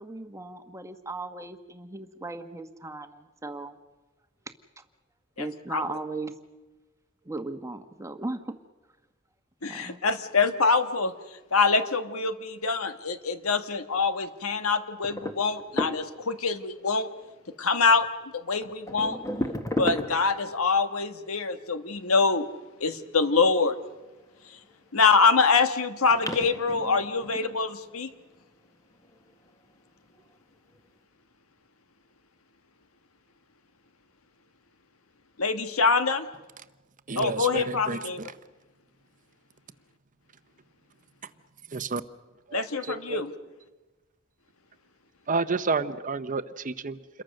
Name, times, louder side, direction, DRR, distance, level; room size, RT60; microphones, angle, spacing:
voice 1, 0.0-3.8 4.8-4.9 5.4-6.3 7.2-8.5 9.7-10.0, right 2 dB, 15° right, 8 dB, 1.3 m, -37 dB
voice 2, 5.4-5.8 9.6-11.1 11.5-17.1 17.6-18.1 18.3-19.2 19.8-22.5 22.8-23.8 24.9-28.1 35.4-36.3 37.2-38.2 42.5-43.3, left 4 dB, 75° left, 9 dB, 1.5 m, -25 dB
sound 1, 15.0-16.4 17.9-18.0 18.6-20.5 24.3-25.0 25.6-25.7 26.1-28.1 29.0-29.3 30.2-30.3 30.7-30.8, left 1 dB, 15° left, 1.6 m, -34 dB
voice 3, 37.1-38.3 41.2-41.3 41.7-42.0 42.5-43.2 45.3-47.2, right 3 dB, 40° right, 12 dB, 0.9 m, -30 dB
28.5 x 22.0 x 6.5 m, 1.2 s
head